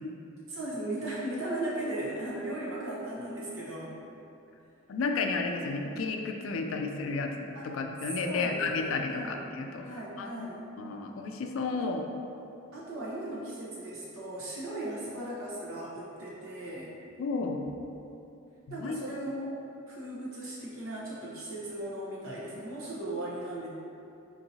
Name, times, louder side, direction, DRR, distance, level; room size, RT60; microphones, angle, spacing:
voice 1, 0.5-4.0 7.5-7.7 8.2-9.4 9.8-10.6 11.8-11.9 12.7-16.9 18.7-19.5 19.9-23.7, right 1 dB, 80° right, -6 dB, 0.9 m, -37 dB
voice 2, 4.9-12.1 17.2-17.6 18.8-19.0, left 4 dB, 70° left, 3 dB, 0.3 m, -32 dB
4.4 x 2.8 x 2.7 m, 2.7 s
head